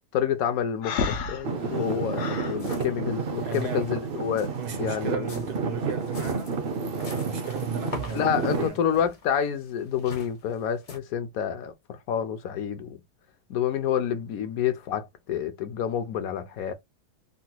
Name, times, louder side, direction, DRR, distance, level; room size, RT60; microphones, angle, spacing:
voice 1, 0.1-4.5 4.8-5.3 8.1-13.0 13.5-16.7, left 8 dB, 70° left, 1.0 m, -28 dB
Breathing, 0.8-2.6, left 5 dB, 90° left, 1.2 m, -30 dB
Traffic noise roadway noise / Engine, 1.4-8.7, right 4 dB, 55° right, 0.6 m, -30 dB
sound 1, 2.1-2.2 2.4-3.1 3.3-3.8 4.3-11.0, left 3 dB, 45° left, 0.4 m, -44 dB
voice 2, 3.4-3.9 4.6-6.6 6.8-8.8, right 7 dB, 75° right, 1.5 m, -36 dB
3.9 x 2.1 x 2.7 m
omnidirectional pair, 1.7 m